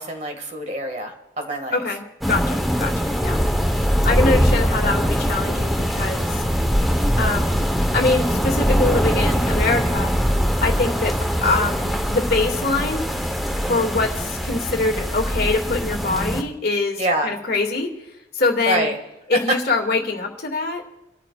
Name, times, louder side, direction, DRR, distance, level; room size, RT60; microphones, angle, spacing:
voice 1, 0.0-1.8 17.0-17.3 18.7-19.0, right 1 dB, 40° right, 4 dB, 1.8 m, -25 dB
voice 2, 1.7-3.4 4.0-6.4 7.2-7.6 7.9-10.2 10.6-11.2 11.4-13.1 13.7-17.9 18.3-18.9 19.3-20.8, left 3 dB, 55° left, 1 dB, 2.0 m, -23 dB
sound 1, 2.2-16.4, equal, ahead, 0.9 m, -22 dB
26.5 x 13.5 x 2.4 m, 0.94 s
head